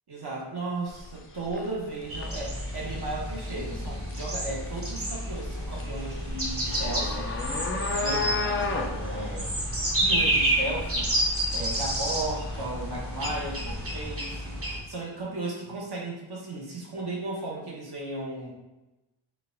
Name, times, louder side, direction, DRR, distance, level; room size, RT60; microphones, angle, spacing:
voice 1, 0.1-7.3 7.7-9.5 10.0-11.1 11.5-18.5, right 2 dB, 55° right, -3 dB, 1.1 m, -35 dB
sound 1, 0.9-14.0, left 3 dB, 30° left, 0.4 m, -35 dB
sound 2, 2.1-14.8, right 1 dB, 30° right, 1.0 m, -30 dB
4.5 x 2.4 x 3.8 m, 1.0 s
wide cardioid pair, 100°, 47 cm